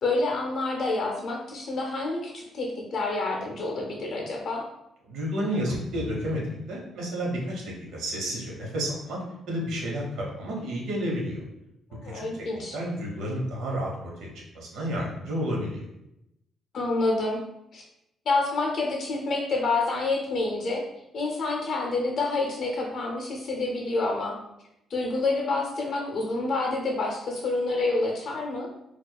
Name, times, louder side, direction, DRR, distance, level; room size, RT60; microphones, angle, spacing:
voice 1, 0.0-4.6 11.9-12.8 16.7-17.4 17.7-17.8 18.3-20.8 21.1-24.4 24.9-28.7, left 3 dB, 45° left, 0 dB, 0.5 m, -28 dB
voice 2, 5.1-11.4 12.0-14.3 14.5-15.8, equal, 85° right, -2 dB, 1.0 m, -31 dB
4.5 x 2.3 x 2.2 m, 0.85 s
cardioid pair, 170°, 0 cm